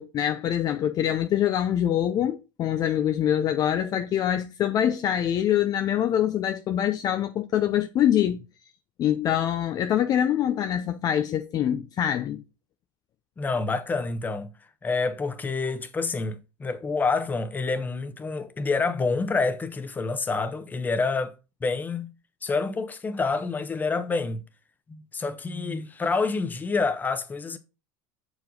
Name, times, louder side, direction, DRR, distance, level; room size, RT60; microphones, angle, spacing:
voice 1, 0.0-8.4 9.0-12.4, left 10 dB, 40° left, 0.5 m, -24 dB
voice 2, 13.4-14.5 14.8-21.3 21.6-22.1 22.4-24.4 24.9-27.6, left 4 dB, 15° left, 0.9 m, -27 dB
6.7 x 4.9 x 3.9 m
supercardioid pair, 120°, 10 cm